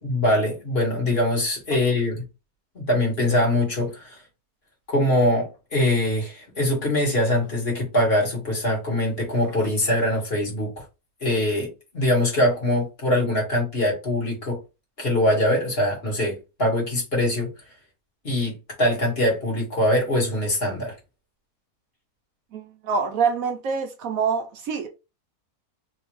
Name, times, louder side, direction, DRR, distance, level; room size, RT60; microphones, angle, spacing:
voice 1, 0.0-2.2 2.7-4.2 4.9-10.8 11.2-14.6 15.0-17.5 18.2-20.9, left 1 dB, 40° left, 1.7 m, -23 dB
voice 2, 22.5-24.9, right 6 dB, 70° right, 1.0 m, -25 dB
3.5 x 2.8 x 3.0 m
omnidirectional pair, 1.6 m